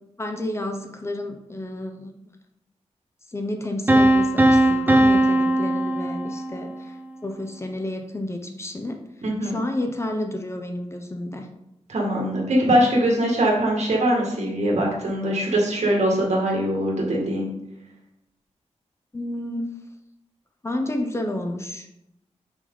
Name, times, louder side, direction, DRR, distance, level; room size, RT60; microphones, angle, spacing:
voice 1, 0.2-2.1 3.3-7.0 7.2-9.0 9.4-11.5 19.1-19.7 20.6-21.9, left 1 dB, 25° left, 4 dB, 0.7 m, -30 dB
sound 1, 3.9-6.8, right 1 dB, 15° right, 0.7 m, -19 dB
voice 2, 9.2-9.6 11.9-17.5, right 1 dB, 70° right, -2 dB, 2.0 m, -22 dB
6.3 x 5.1 x 4.0 m, 0.84 s
wide cardioid pair, 130°, 12 cm